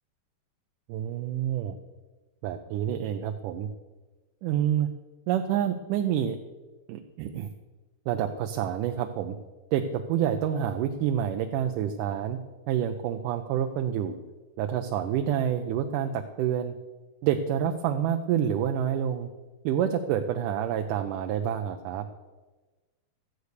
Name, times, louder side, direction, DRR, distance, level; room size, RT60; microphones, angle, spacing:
voice 1, 0.9-1.8 2.4-3.7 4.4-4.9 5.3-6.4 6.9-7.5 8.1-9.4 9.7-12.4 12.7-14.2 14.6-16.8 17.2-19.3 19.6-22.1, right 9 dB, 80° right, 5 dB, 2.2 m, -28 dB
13.0 x 8.1 x 6.6 m, 1.2 s
omnidirectional pair, 3.8 m